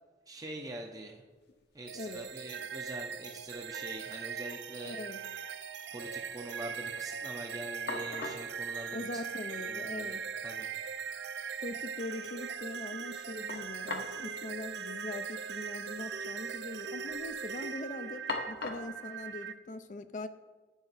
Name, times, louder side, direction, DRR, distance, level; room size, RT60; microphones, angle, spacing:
voice 1, 0.3-1.2 1.7-4.9 5.9-9.2 9.5-10.7, right 1 dB, 20° right, 2 dB, 0.6 m, -44 dB
sound 1, 1.4-1.5 1.7-2.3 2.7-3.6 3.8-3.9 7.4-7.5 7.9-8.5 9.6-9.7 10.1-10.2 13.5-14.2 14.5-14.6 15.6-15.8 16.1-16.6 17.0-17.4 18.3-19.0, left 3 dB, 70° left, 1.0 m, -41 dB
voice 2, 1.9-2.3 4.8-5.2 8.9-10.2 11.6-20.3, left 2 dB, 45° left, 10 dB, 0.4 m, -42 dB
sound 2, 1.9-19.5, right 6 dB, 85° right, 0.5 m, -40 dB
12.0 x 8.6 x 4.1 m, 1.3 s
head